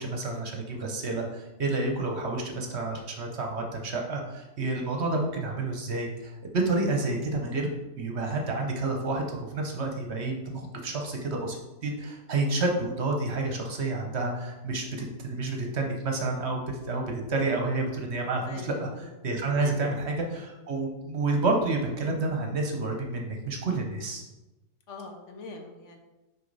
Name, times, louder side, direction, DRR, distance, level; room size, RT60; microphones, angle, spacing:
voice 1, 0.0-7.7 7.9-11.6 11.8-18.9 19.2-24.3, right 2 dB, 55° right, 2 dB, 1.1 m, -29 dB
voice 2, 6.9-7.2 18.4-19.1 19.6-19.8 20.3-20.4 21.2-21.4 24.9-26.0, left 3 dB, 65° left, 3 dB, 1.1 m, -43 dB
6.3 x 4.5 x 4.0 m, 1.0 s
omnidirectional pair, 1.4 m